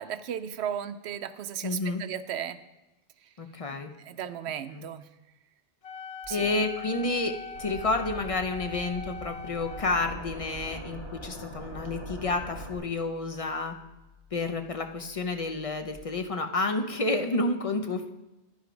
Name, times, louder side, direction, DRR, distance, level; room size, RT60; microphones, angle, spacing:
voice 1, 0.0-2.6 3.7-5.1 6.3-6.5, right 9 dB, 70° right, 12 dB, 0.8 m, -35 dB
voice 2, 1.6-2.0 3.4-3.9 4.7-4.8 6.3-13.7 14.3-18.1, left 3 dB, 35° left, 6 dB, 0.7 m, -30 dB
Wind instrument woodwind instrument, 5.8-10.0, left 4 dB, 65° left, 0.3 m, -41 dB
sound 1, 6.2-16.0, left 6 dB, 5° right, 1.3 m, -57 dB
sound 2, 7.5-12.8, right 1 dB, 90° left, 3.7 m, -42 dB
10.5 x 7.5 x 5.2 m, 1.0 s
omnidirectional pair, 1.2 m